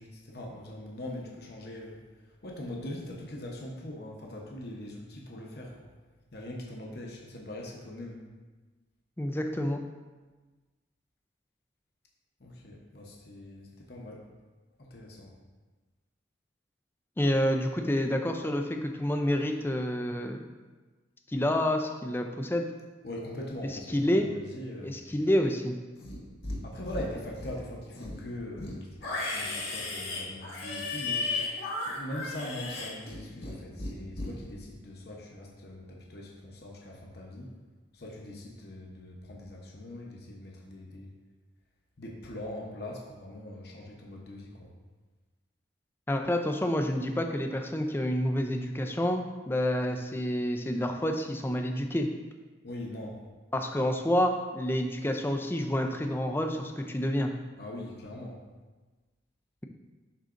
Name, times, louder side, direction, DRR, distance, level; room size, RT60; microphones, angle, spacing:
voice 1, 0.0-2.0 2.4-5.9 6.3-8.2 12.4-14.2 14.8-15.3 23.0-25.2 26.6-31.3 31.9-37.5 37.9-41.1 42.0-44.7 52.6-53.2 57.6-58.4, left 1 dB, 55° left, -1 dB, 0.9 m, -41 dB
voice 2, 9.2-9.8 17.2-20.5 21.3-22.7 23.6-24.3 24.8-25.8 46.1-52.1 53.5-57.3, left 1 dB, 10° left, 4 dB, 0.4 m, -28 dB
Livestock farm animals working animals, 26.0-26.6 26.9-27.6 27.9-33.5 33.8-34.3, left 3 dB, 75° left, 1.6 m, -35 dB
11.0 x 4.0 x 2.5 m, 1.3 s
head